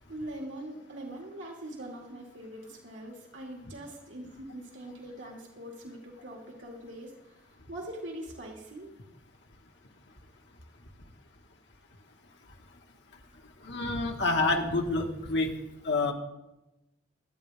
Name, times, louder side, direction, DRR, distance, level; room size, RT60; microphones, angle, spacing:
voice 1, 0.1-7.1 7.7-8.9, right 1 dB, 75° right, -1 dB, 2.3 m, -42 dB
voice 2, 13.6-15.5 15.8-16.1, left 3 dB, 65° left, 2 dB, 1.7 m, -27 dB
23.5 x 9.3 x 3.6 m, 0.96 s
head